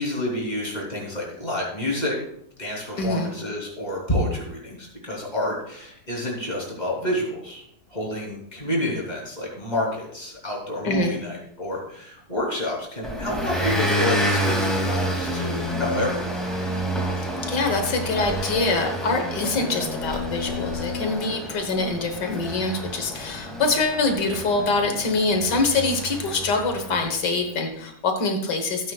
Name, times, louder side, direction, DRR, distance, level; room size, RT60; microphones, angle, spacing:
voice 1, 0.0-2.2 2.6-7.6 7.9-16.4, left 1 dB, 25° left, -3 dB, 3.5 m, -29 dB
voice 2, 3.0-3.3 10.8-11.2 17.2-28.9, left 3 dB, 85° left, 5 dB, 1.9 m, -24 dB
Motor vehicle (road) / Engine, 13.0-27.2, equal, ahead, 2.3 m, -28 dB
16.5 x 9.0 x 2.4 m, 0.69 s
omnidirectional pair, 1.8 m